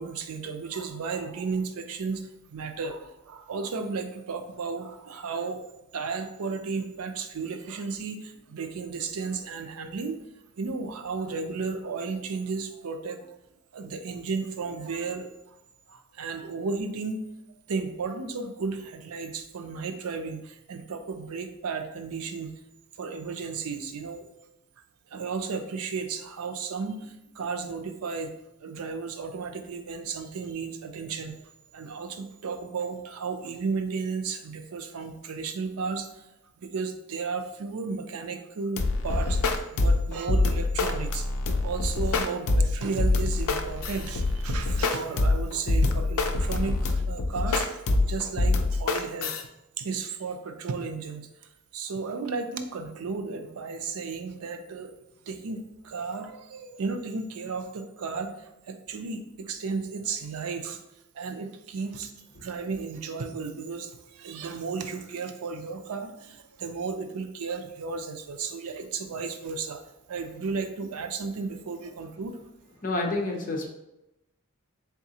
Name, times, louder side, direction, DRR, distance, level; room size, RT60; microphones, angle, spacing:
voice 1, 0.0-5.6 5.9-10.2 10.6-13.4 13.7-15.6 15.9-17.2 17.7-22.5 23.0-24.3 25.1-28.3 28.6-31.4 31.7-36.3 36.6-41.3 41.6-49.4 49.8-60.8 61.1-72.4, right 4 dB, 90° right, 7 dB, 0.5 m, -34 dB
sound 1, 38.8-49.4, left 2 dB, 70° left, 0.4 m, -25 dB
voice 2, 72.8-73.7, left 2 dB, 40° left, 1 dB, 0.7 m, -28 dB
3.9 x 3.6 x 2.8 m, 0.90 s
head